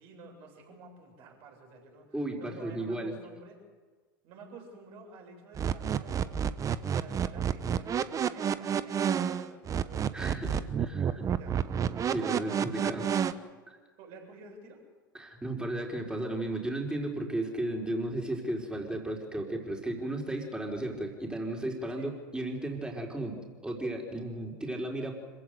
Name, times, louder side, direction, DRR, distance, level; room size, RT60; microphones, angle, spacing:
voice 1, 0.0-3.6 4.2-6.4 6.8-10.5 10.9-11.5 12.1-13.2 14.0-14.8 21.9-22.1, right 3 dB, 50° right, 1 dB, 7.8 m, -51 dB
voice 2, 2.1-3.2 10.1-11.3 12.0-13.0 15.1-25.2, right 1 dB, 10° right, 0 dB, 4.7 m, -34 dB
sound 1, 5.5-13.3, right 8 dB, 30° right, 1.0 m, -29 dB
26.0 x 15.5 x 8.0 m, 1.4 s
hypercardioid pair, 90°, 11 cm